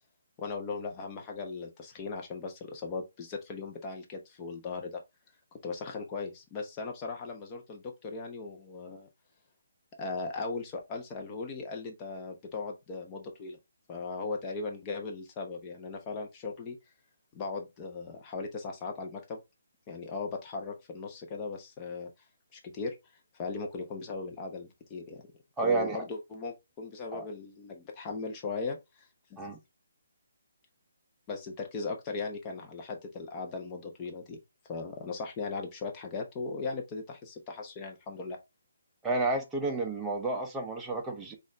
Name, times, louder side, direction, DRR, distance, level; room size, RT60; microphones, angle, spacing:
voice 1, 0.4-5.0 5.6-9.1 10.0-13.6 13.9-16.8 17.3-19.4 19.9-22.1 22.5-23.0 23.3-25.2 25.6-29.4 31.3-34.4 34.7-38.4, left 3 dB, 20° left, 0.9 m, -38 dB
voice 2, 25.6-26.0 27.1-27.2 29.4-29.6 39.0-41.3, right 3 dB, 10° right, 0.7 m, -30 dB
4.1 x 2.6 x 3.0 m
hypercardioid pair, 155°, 0 cm